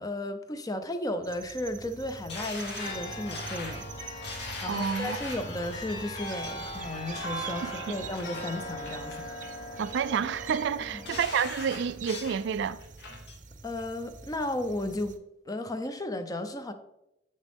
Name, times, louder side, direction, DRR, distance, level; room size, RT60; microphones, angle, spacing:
voice 1, 0.0-9.8 10.9-11.0 13.6-15.2 15.5-16.7, left 1 dB, 20° left, 0.6 m, -35 dB
sound 1, 1.2-15.2, right 4 dB, 45° right, 0.7 m, -45 dB
sound 2, 2.3-5.5 6.1-6.5 6.9-7.5 7.9-8.4 8.8-9.5 9.8-10.4 10.8-12.4 12.8-13.4 13.8-13.9, left 3 dB, 65° left, 1.5 m, -41 dB
sound 3, 2.8-11.4, equal, 85° left, 2.0 m, -40 dB
voice 2, 4.7-5.2 7.6-7.8 9.8-12.8, right 7 dB, 65° right, 0.3 m, -29 dB
8.3 x 6.5 x 3.6 m
head